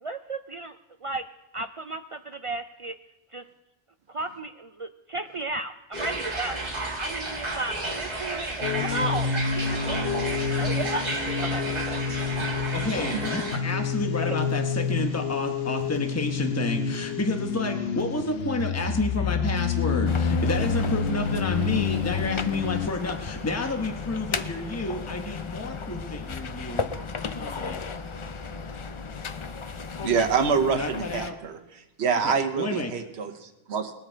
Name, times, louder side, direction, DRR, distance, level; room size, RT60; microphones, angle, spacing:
voice 1, 0.0-0.7 1.0-1.2 1.5-2.9 3.3-3.4 4.1-6.6 7.0-11.0 11.4-12.0 14.3-14.4, right 2 dB, 60° right, 9 dB, 0.3 m, -34 dB
sound 1, 5.9-13.6, right 2 dB, 40° right, 1.9 m, -32 dB
sound 2, 8.6-22.9, left 5 dB, 70° left, 0.9 m, -28 dB
voice 2, 12.7-26.9 27.2-27.8 30.7-31.4 32.2-32.9, left 2 dB, 15° left, 4 dB, 1.0 m, -30 dB
sound 3, 20.1-31.3, left 5 dB, 40° left, 0.5 m, -35 dB
voice 3, 30.0-31.6 32.0-33.9, right 6 dB, 90° right, 7 dB, 1.2 m, -26 dB
21.0 x 7.4 x 4.5 m, 0.97 s
omnidirectional pair, 1.1 m